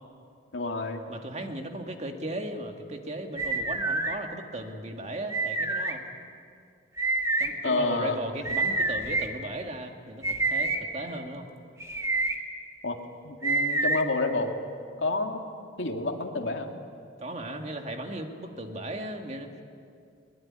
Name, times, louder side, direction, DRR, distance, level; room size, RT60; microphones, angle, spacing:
voice 1, 0.5-1.0 7.6-8.2 12.8-13.0 13.2-14.5 15.0-15.4 15.8-16.7, left 3 dB, 90° left, 3 dB, 2.2 m, -28 dB
voice 2, 1.1-6.0 7.4-11.5 17.2-19.6, right 1 dB, 40° right, 4 dB, 2.0 m, -36 dB
sound 1, 3.4-4.1 5.3-5.9 7.0-7.5 8.4-9.3 10.2-10.8 11.8-12.3 13.4-14.0, right 2 dB, 15° right, 1.8 m, -27 dB
22.0 x 21.0 x 9.8 m, 2.4 s
head